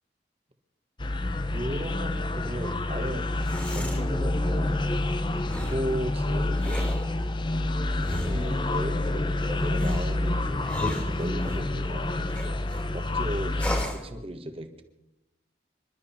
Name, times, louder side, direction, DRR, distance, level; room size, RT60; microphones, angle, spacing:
sound 1, 1.0-13.9, left 2 dB, 25° left, 0.8 m, -28 dB
voice 1, 1.5-3.3 3.7-4.8 5.3-6.9 8.0-13.5 13.9-14.8, equal, 30° right, 7 dB, 1.5 m, -36 dB
sound 2, 3.2-4.1 5.4-5.9 6.5-7.1 8.0-8.6 9.7-11.7 12.3-12.8 13.5-14.1, equal, 10° left, 2.4 m, -35 dB
26.5 x 12.5 x 4.4 m, 0.90 s
head